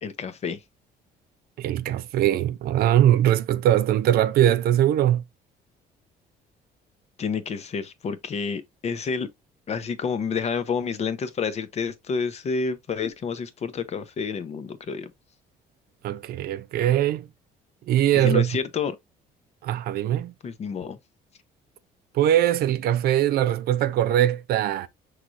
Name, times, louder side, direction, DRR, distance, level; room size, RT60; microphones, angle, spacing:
voice 1, 0.0-0.6 7.2-9.3 9.7-15.1 18.1-19.0 20.4-21.0, left 5 dB, 40° left, 0.6 m, -29 dB
voice 2, 1.6-5.2 16.0-17.3 17.9-18.5 19.6-20.3 22.1-24.9, right 11 dB, 65° right, 0.5 m, -21 dB
5.8 x 3.1 x 2.5 m
cardioid pair, 110°, 17 cm